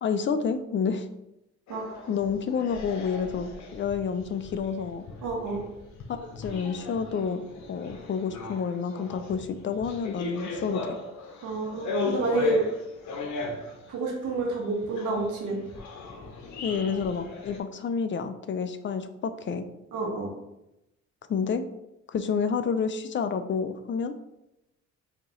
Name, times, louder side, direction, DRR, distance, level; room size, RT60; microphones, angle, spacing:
voice 1, 0.0-1.1 2.1-5.0 6.1-7.4 7.7-11.0 16.6-19.7 21.3-21.6 22.1-24.1, left 6 dB, 40° left, 10 dB, 0.5 m, -29 dB
sound 1, 1.7-17.6, left 3 dB, 70° left, 0.9 m, -37 dB
voice 2, 1.7-2.0 5.2-5.6 11.4-12.6 13.9-15.6 19.9-20.3, right 3 dB, 80° right, -1 dB, 1.4 m, -29 dB
5.0 x 2.9 x 3.1 m, 0.88 s
cardioid pair, 90°, 30 cm